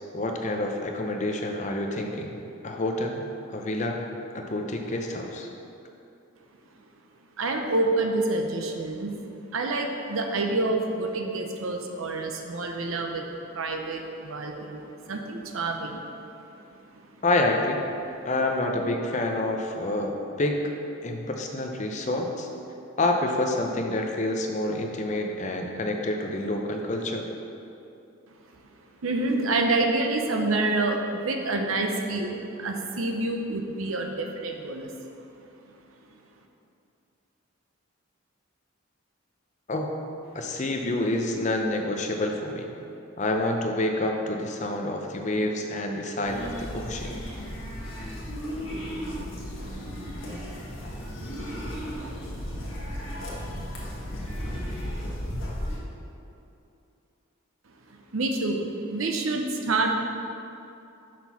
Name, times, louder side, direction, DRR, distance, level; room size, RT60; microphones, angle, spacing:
voice 1, 0.1-2.3 2.6-4.0 4.3-5.5 17.2-17.8 18.2-20.1 20.4-20.6 21.0-22.5 23.0-27.3 39.7-39.9 40.3-42.7 43.2-47.2, left 1 dB, 35° left, 3 dB, 0.5 m, -28 dB
voice 2, 7.4-9.1 9.5-13.3 13.5-16.0 16.7-16.8 29.0-34.9 58.1-59.9, right 2 dB, 75° right, 3 dB, 0.7 m, -27 dB
sound 1, 46.3-55.8, equal, 65° left, 1.4 m, -34 dB
5.9 x 4.5 x 5.6 m, 2.8 s
head